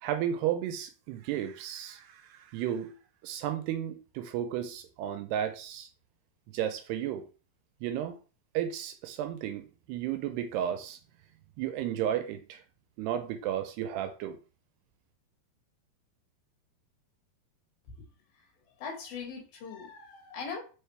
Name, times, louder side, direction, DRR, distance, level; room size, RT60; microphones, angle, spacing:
voice 1, 0.0-2.9 3.2-5.9 6.5-7.3 7.8-8.2 8.5-11.0 11.6-12.6 13.0-14.4, right 10 dB, 80° right, 2.6 m, -33 dB
voice 2, 18.8-20.6, left 5 dB, 65° left, 3.4 m, -40 dB
5.5 x 5.4 x 3.4 m
omnidirectional pair, 4.9 m